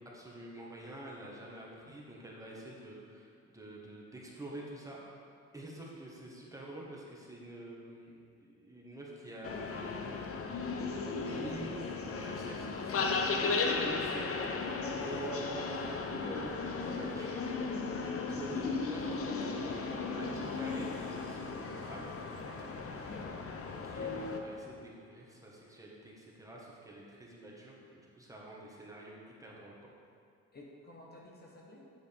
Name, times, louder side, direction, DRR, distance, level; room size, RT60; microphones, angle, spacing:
voice 1, 0.1-5.0 5.5-9.9 10.8-14.7 15.0-17.5 18.1-23.1 23.7-29.9, right 1 dB, 10° right, -5 dB, 1.6 m, -47 dB
sound 1, 9.4-24.4, left 4 dB, 50° left, 0.8 m, -36 dB
voice 2, 13.3-13.7 22.9-23.4 30.5-31.9, left 2 dB, 30° left, -3 dB, 1.2 m, -52 dB
7.5 x 7.4 x 3.6 m, 2.4 s
cardioid pair, 90°, 30 cm